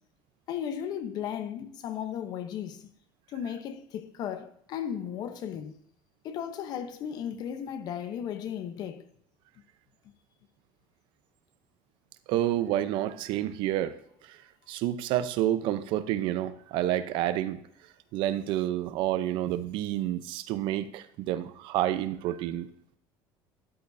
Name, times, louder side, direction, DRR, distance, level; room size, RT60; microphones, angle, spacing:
voice 1, 0.5-2.9 3.3-5.8 6.2-9.1, left 9 dB, 45° left, 0.9 m, -35 dB
voice 2, 12.3-14.0 14.3-14.4 14.7-17.6 18.1-22.7, right 13 dB, 60° right, 0.7 m, -29 dB
13.0 x 10.5 x 2.7 m
cardioid pair, 165°, 9 cm